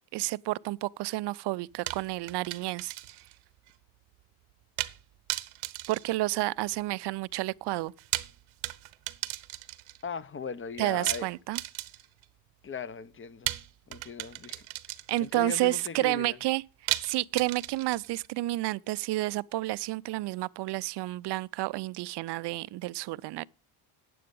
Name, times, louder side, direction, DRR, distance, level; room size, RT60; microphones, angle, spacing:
voice 1, 0.1-2.9 5.9-7.9 10.8-11.6 15.1-16.6 17.0-23.4, right 18 dB, 55° right, 0.5 m, -30 dB
sound 1, 1.9-3.4 3.7-3.8 4.8-5.0 5.3-6.8 7.9-10.0 11.1-12.2 13.5-15.4 16.9-18.3, right 17 dB, 75° right, 0.9 m, -36 dB
voice 2, 10.0-11.3 12.6-13.5 13.9-16.4, left 6 dB, 25° left, 0.7 m, -39 dB
9.3 x 7.7 x 5.3 m
supercardioid pair, 80°, 49 cm